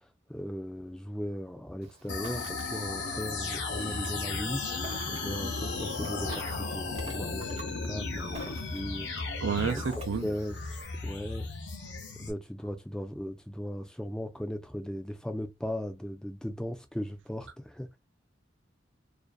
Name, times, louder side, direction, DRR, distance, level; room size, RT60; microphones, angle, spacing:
voice 1, 0.3-4.7 5.1-9.1 9.6-9.8 10.2-11.5 12.2-18.0, equal, 5° left, 0.4 m, -37 dB
Ocean, 1.8-10.8, right 1 dB, 30° right, 0.7 m, -48 dB
sound 1, 2.1-12.3, left 3 dB, 65° left, 0.6 m, -35 dB
voice 2, 9.4-10.3, right 6 dB, 80° right, 0.5 m, -30 dB
2.5 x 2.1 x 2.2 m
head